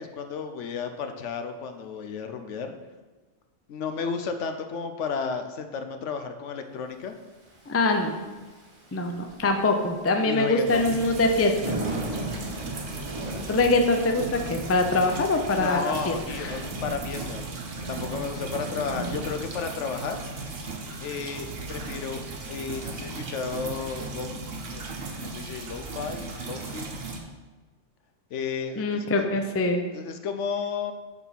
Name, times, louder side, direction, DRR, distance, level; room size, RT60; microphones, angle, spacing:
voice 1, 0.0-2.7 3.7-7.2 10.2-10.9 15.6-17.4 17.9-20.2 21.0-22.2 22.5-24.4 24.7-26.9 28.3-29.3 29.9-30.9, left 5 dB, 75° left, 7 dB, 1.0 m, -33 dB
Thunder / Rain, 7.3-23.9, right 1 dB, 25° right, 1.3 m, -40 dB
voice 2, 7.7-8.1 8.9-11.8 13.5-16.6 28.8-29.8, left 2 dB, 20° left, 4 dB, 0.3 m, -24 dB
sound 1, 10.7-27.2, right 3 dB, 55° right, 1.1 m, -37 dB
6.9 x 4.3 x 5.8 m, 1.3 s
omnidirectional pair, 1.3 m